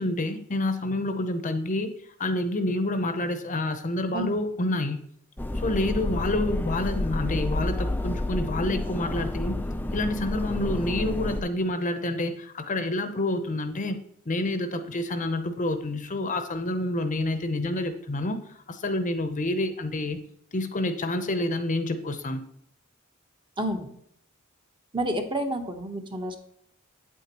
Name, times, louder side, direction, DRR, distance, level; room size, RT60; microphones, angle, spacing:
voice 1, 0.0-1.9 2.2-5.0 5.5-9.6 9.9-14.0 14.3-20.2 20.5-22.4, left 2 dB, 40° left, 8 dB, 0.7 m, -28 dB
sound 1, 5.4-11.4, left 1 dB, 10° left, 0.4 m, -30 dB
voice 2, 23.6-23.9 24.9-26.4, right 1 dB, 25° right, 5 dB, 1.1 m, -30 dB
9.1 x 8.3 x 3.0 m, 0.72 s
head